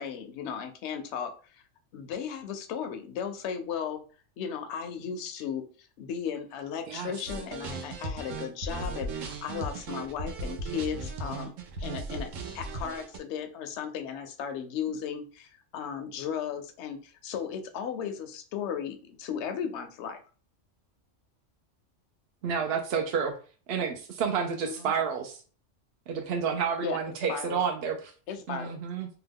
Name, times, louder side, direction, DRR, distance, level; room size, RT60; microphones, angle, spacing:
voice 1, 0.0-1.3 1.9-4.0 4.4-5.6 6.0-11.5 11.8-12.3 12.5-20.2 24.6-24.9 26.8-27.0 27.3-27.6 28.3-28.7, left 7 dB, 70° left, 7 dB, 0.8 m, -35 dB
sound 1, 7.3-13.2, right 2 dB, 90° right, 1.0 m, -36 dB
voice 2, 22.4-23.4 23.7-25.4 26.1-28.1 28.5-29.1, right 6 dB, 65° right, 4 dB, 0.7 m, -30 dB
2.9 x 2.2 x 3.4 m, 0.38 s
omnidirectional pair, 1.3 m